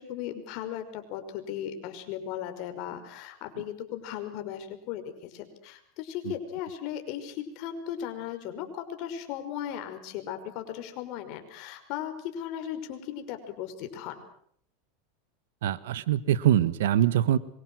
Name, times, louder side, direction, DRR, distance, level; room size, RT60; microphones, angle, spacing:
voice 1, 0.0-14.2, left 10 dB, 55° left, 7 dB, 5.6 m, -37 dB
voice 2, 15.6-17.4, right 11 dB, 80° right, 16 dB, 1.5 m, -23 dB
26.5 x 24.5 x 6.4 m, 0.64 s
supercardioid pair, 135°, 0 cm